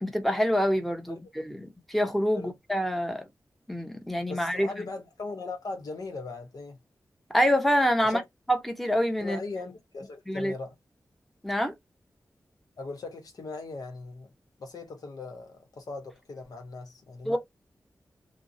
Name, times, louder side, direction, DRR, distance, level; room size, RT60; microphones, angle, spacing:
voice 1, 0.0-3.2 3.7-4.8 7.3-8.2 8.5-9.4 10.3-10.5 11.4-11.7 17.3-17.4, equal, ahead, 0.8 m, -26 dB
voice 2, 4.3-6.8 8.0-8.2 9.2-10.7 12.8-14.3 14.6-17.4, left 3 dB, 75° left, 0.8 m, -39 dB
2.5 x 2.0 x 2.6 m
cardioid pair, 55°, 6 cm